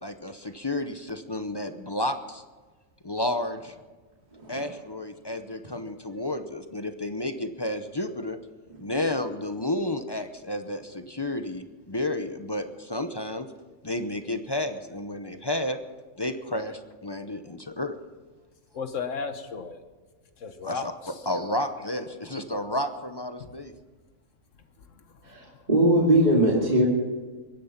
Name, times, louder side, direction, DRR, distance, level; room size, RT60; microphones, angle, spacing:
voice 1, 0.0-2.4 3.0-3.8 4.5-8.4 8.8-13.5 13.8-15.8 16.2-17.9 20.6-23.7, left 1 dB, 25° left, 8 dB, 0.6 m, -31 dB
voice 2, 4.3-4.6 25.2-26.9, right 1 dB, 35° right, -3 dB, 2.6 m, -21 dB
voice 3, 18.7-19.8 20.4-21.1 25.3-25.6, left 5 dB, 65° left, 8 dB, 1.4 m, -34 dB
23.0 x 10.5 x 5.8 m, 1.3 s
omnidirectional pair, 1.4 m